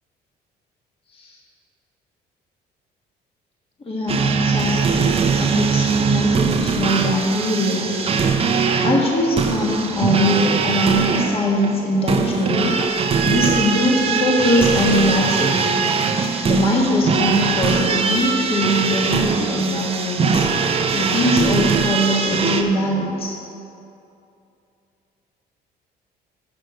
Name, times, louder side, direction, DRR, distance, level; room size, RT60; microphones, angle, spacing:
voice 1, 3.8-8.1 8.8-12.8 13.2-15.9 16.4-23.4, left 1 dB, 35° left, -2 dB, 1.6 m, -21 dB
sound 1, 4.1-22.6, right 5 dB, 35° right, 0.8 m, -21 dB
7.7 x 6.3 x 8.0 m, 2.7 s
cardioid pair, 110°, 17 cm